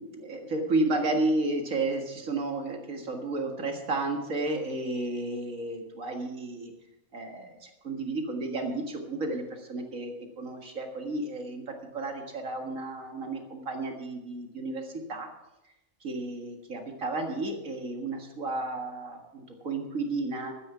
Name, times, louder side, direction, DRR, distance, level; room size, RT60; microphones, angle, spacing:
voice 1, 0.0-6.7 7.1-15.3 16.0-20.5, right 2 dB, 85° right, 3 dB, 2.3 m, -32 dB
12.5 x 9.9 x 5.7 m, 0.94 s
omnidirectional pair, 1.3 m